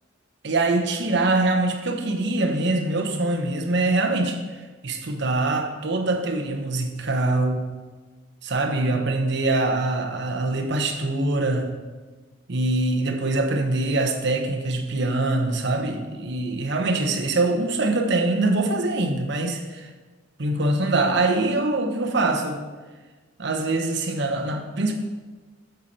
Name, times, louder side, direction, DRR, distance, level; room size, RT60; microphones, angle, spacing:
voice 1, 0.4-4.4 4.8-7.7 8.4-11.7 12.5-19.9 20.4-22.6 23.4-24.9, right 2 dB, 60° right, 4 dB, 1.0 m, -23 dB
8.0 x 7.0 x 4.3 m, 1.3 s
head